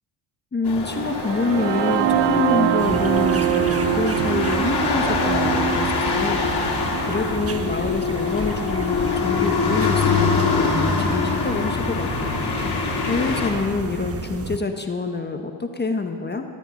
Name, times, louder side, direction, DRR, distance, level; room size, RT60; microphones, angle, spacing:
voice 1, 0.5-12.3 12.6-16.4, left 3 dB, 20° left, 5 dB, 1.0 m, -27 dB
sound 1, 0.6-13.5, left 4 dB, 55° left, 2.5 m, -24 dB
sound 2, 1.1-9.0, right 11 dB, 65° right, 0.6 m, -25 dB
sound 3, 2.8-14.6, right 4 dB, 30° right, 1.0 m, -33 dB
13.5 x 13.0 x 4.2 m, 2.2 s
cardioid pair, 80°, 46 cm